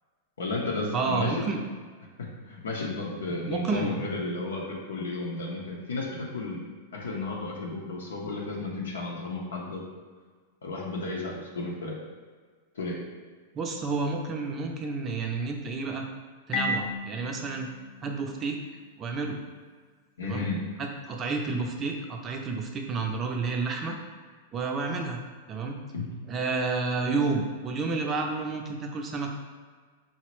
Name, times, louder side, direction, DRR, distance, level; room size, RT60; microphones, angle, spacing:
voice 1, 0.4-1.4 2.2-6.6 6.9-9.8 10.6-12.0 12.7-13.0 20.2-20.6 25.9-26.1, left 3 dB, 85° left, -3 dB, 0.6 m, -33 dB
voice 2, 0.9-1.6 3.3-4.1 13.5-16.1 16.5-17.7 18.0-18.6 19.0-19.4 20.2-20.5 20.8-24.0 24.5-25.2 25.5-25.8 26.3-29.3, right 4 dB, 30° right, 2 dB, 0.4 m, -30 dB
Marimba xylophone, 16.5-19.2, left 2 dB, 45° left, 0.4 m, -35 dB
4.0 x 2.0 x 3.0 m, 1.5 s
hypercardioid pair, 115°, 0 cm